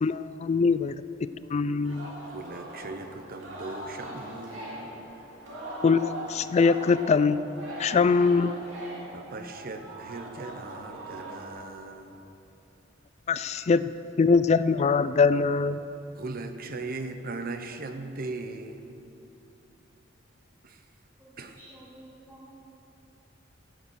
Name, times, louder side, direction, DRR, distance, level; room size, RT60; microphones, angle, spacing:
voice 1, 0.0-1.0 1.5-2.1 5.8-7.4 7.8-8.6 13.3-13.9 14.2-15.8, left 4 dB, 35° left, 15 dB, 0.3 m, -23 dB
Singing, 1.8-11.5, right 1 dB, 75° right, 3.3 m, -41 dB
voice 2, 2.3-5.1 9.1-12.2 16.2-19.1 20.6-20.8 21.4-21.6, right 3 dB, 50° right, 7 dB, 0.8 m, -39 dB
voice 3, 21.2-22.5, right 1 dB, 10° right, -6 dB, 1.5 m, -51 dB
15.5 x 6.9 x 6.3 m, 3.0 s
head